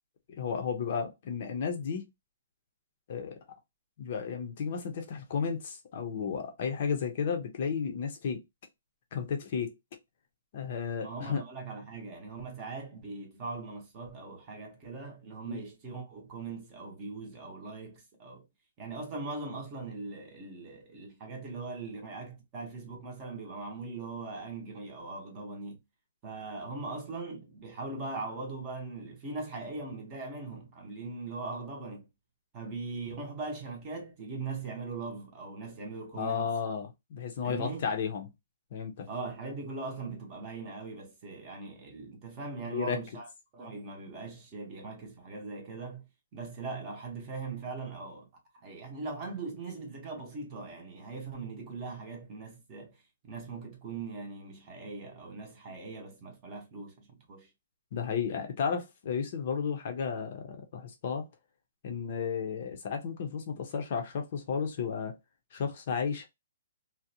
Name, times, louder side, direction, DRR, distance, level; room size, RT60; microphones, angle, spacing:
voice 1, 0.3-2.1 3.1-3.4 4.0-8.4 9.1-9.7 10.5-11.4 15.5-15.6 36.1-38.3 38.7-39.1 42.6-43.0 57.9-61.3 61.8-65.1 65.5-66.3, left 6 dB, 40° left, 0.5 m, -33 dB
voice 2, 11.0-18.5 18.8-25.8 26.2-32.1 32.5-36.5 37.4-37.9 39.1-43.3 43.5-46.1 46.3-48.3 48.6-57.5, right 3 dB, 20° right, 0.7 m, -40 dB
2.5 x 2.0 x 2.6 m
hypercardioid pair, 175°, 0 cm